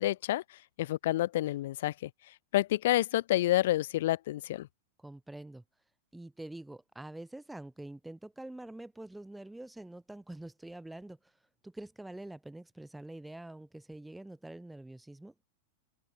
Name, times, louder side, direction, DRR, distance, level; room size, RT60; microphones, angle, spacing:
voice 1, 0.0-2.1 2.5-4.7, left 15 dB, 65° left, 0.9 m, -29 dB
voice 2, 5.0-5.6 6.1-11.4 11.6-15.3, right 1 dB, 5° right, 2.1 m, -46 dB
open air
supercardioid pair, 165°, 0 cm